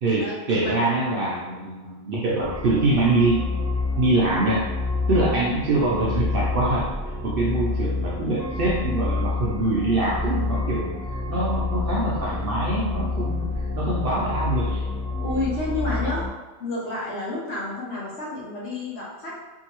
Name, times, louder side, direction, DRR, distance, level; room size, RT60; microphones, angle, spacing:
voice 1, 0.0-3.4 4.0-4.7 5.1-6.9 7.2-10.9 11.3-14.9, right 2 dB, 60° right, -5 dB, 0.6 m, -24 dB
sound 1, 2.4-16.3, left 3 dB, 40° left, 0.9 m, -28 dB
voice 2, 15.2-16.3 16.6-19.4, left 2 dB, 60° left, -6 dB, 1.0 m, -30 dB
2.7 x 2.6 x 2.9 m, 1.2 s
omnidirectional pair, 1.3 m